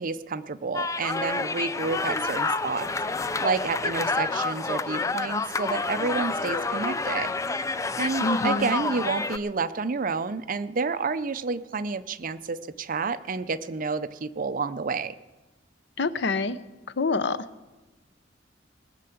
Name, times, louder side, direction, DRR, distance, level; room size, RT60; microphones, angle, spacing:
voice 1, 0.0-2.9 3.2-7.3 8.0-15.1, right 4 dB, 45° right, 13 dB, 0.5 m, -30 dB
sound 1, 0.7-9.4, left 3 dB, 15° left, 0.4 m, -28 dB
voice 2, 8.2-8.7 16.0-16.6 17.0-17.4, left 3 dB, 65° left, 14 dB, 0.6 m, -26 dB
20.0 x 6.8 x 7.9 m, 1.1 s
head